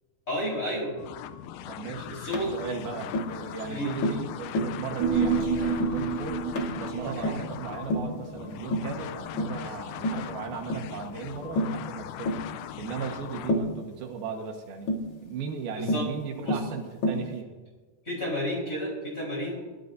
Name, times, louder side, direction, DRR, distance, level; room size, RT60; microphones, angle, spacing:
voice 1, 0.3-1.0 2.1-2.5 3.7-4.0 15.8-16.1 16.4-16.6 18.0-19.7, equal, 20° left, -3 dB, 4.7 m, -31 dB
sound 1, 1.0-13.5, left 11 dB, 80° left, 2.3 m, -40 dB
voice 2, 1.7-6.4 6.8-12.4 12.7-14.9 15.2-17.5, right 6 dB, 80° right, 3 dB, 3.3 m, -37 dB
Tap, 2.3-2.5 3.1-3.3 4.0-4.3 4.5-4.8 5.2-5.4 5.8-6.0 6.6-6.8 7.2-7.5 7.9-8.1 8.7-9.0 9.4-9.6 10.0-10.3 10.7-10.9 11.6-11.8 12.3-12.5 13.5-13.8 14.9-15.1 15.9-16.1 16.5-16.7 17.0-17.3, left 1 dB, 50° left, 1.4 m, -28 dB
Human voice, 5.0-9.6 9.9-10.0, right 5 dB, 65° right, 2.7 m, -30 dB
21.0 x 13.5 x 2.7 m, 1.3 s
omnidirectional pair, 4.3 m